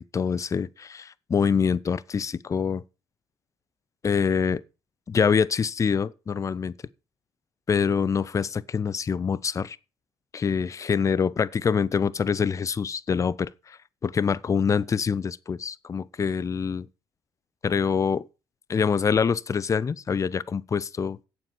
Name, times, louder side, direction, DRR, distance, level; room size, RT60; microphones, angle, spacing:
voice 1, 0.0-2.8 4.0-4.6 5.1-6.7 7.7-9.8 10.3-16.9 17.6-18.3 18.7-21.2, left 6 dB, 25° left, 0.6 m, -25 dB
8.8 x 7.4 x 7.2 m
figure-of-eight pair, 50°, 12 cm